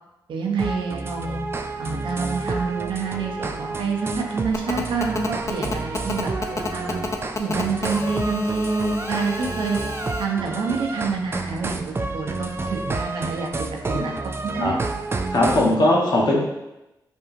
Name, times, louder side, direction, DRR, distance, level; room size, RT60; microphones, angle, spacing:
voice 1, 0.3-1.4 1.8-7.0 7.4-9.8 10.2-14.1 14.4-14.8, right 4 dB, 70° right, -1 dB, 0.8 m, -27 dB
sound 1, 0.6-15.7, right 3 dB, 30° right, 0.3 m, -30 dB
Telephone, 4.5-10.2, left 3 dB, 35° left, 0.6 m, -30 dB
voice 2, 15.3-16.4, left 1 dB, 55° left, -3 dB, 1.1 m, -19 dB
5.2 x 2.7 x 2.6 m, 0.95 s
supercardioid pair, 50°, 9 cm